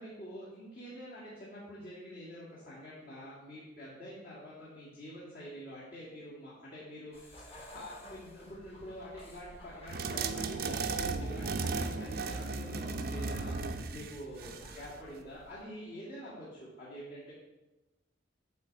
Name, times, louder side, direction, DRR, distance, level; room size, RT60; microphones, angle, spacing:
voice 1, 0.0-7.2 7.4-17.3, equal, 50° left, -10 dB, 2.1 m, -46 dB
sound 1, 7.1-15.6, left 1 dB, 30° left, 1.4 m, -54 dB
sound 2, 9.9-14.9, right 4 dB, 50° right, 0.5 m, -35 dB
8.1 x 3.8 x 6.6 m, 1.0 s
head